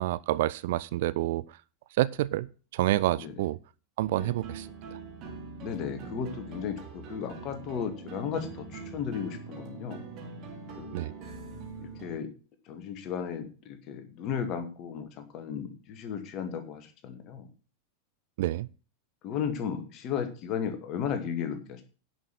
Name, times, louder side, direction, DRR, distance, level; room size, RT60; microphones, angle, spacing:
voice 1, 0.0-1.4 2.0-2.5 2.7-3.6 4.0-4.7 10.9-11.1 18.4-18.7, right 15 dB, 55° right, 0.4 m, -28 dB
sound 1, 4.0-12.2, right 4 dB, 40° right, 3.5 m, -43 dB
voice 2, 5.6-10.0 10.8-11.0 11.8-12.3 12.7-17.5 19.2-21.8, left 7 dB, 35° left, 1.9 m, -35 dB
10.5 x 6.3 x 6.2 m
figure-of-eight pair, 90°, 0 cm